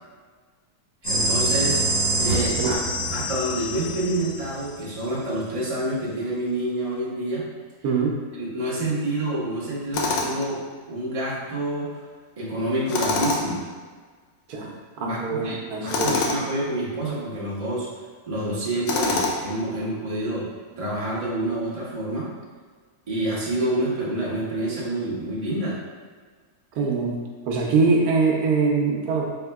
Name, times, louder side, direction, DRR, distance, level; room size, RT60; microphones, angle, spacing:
sound 1, 1.0-4.7, right 1 dB, 25° left, 1.3 m, -25 dB
voice 1, 1.0-1.8 2.2-2.8 3.1-7.5 8.3-10.6 10.9-12.0 12.4-13.6 15.0-15.5 15.8-17.9 18.3-20.5 20.8-22.3 23.1-25.8, right 1 dB, 30° right, -7 dB, 0.8 m, -27 dB
voice 2, 7.8-8.2 14.5-14.7 15.0-16.2 26.8-27.2 27.5-29.2, right 4 dB, 75° right, -1 dB, 1.2 m, -23 dB
Tools, 9.9-10.5 12.9-13.6 15.9-16.4 18.9-19.6, left 3 dB, 70° left, 0.7 m, -25 dB
4.1 x 3.6 x 2.3 m, 1.5 s
omnidirectional pair, 1.7 m